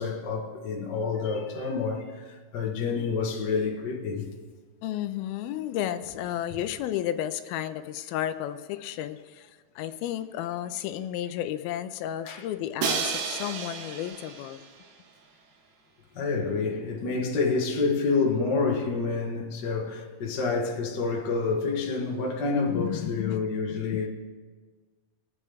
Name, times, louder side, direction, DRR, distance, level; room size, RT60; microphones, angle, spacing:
voice 1, 0.0-4.3 12.2-12.4 16.1-24.1, left 4 dB, 60° left, 1.1 m, -28 dB
voice 2, 4.8-14.7 22.7-23.9, left 11 dB, 85° left, 2.4 m, -33 dB
Crash cymbal, 12.8-14.8, right 6 dB, 85° right, 2.9 m, -32 dB
21.5 x 8.4 x 3.5 m
omnidirectional pair, 4.3 m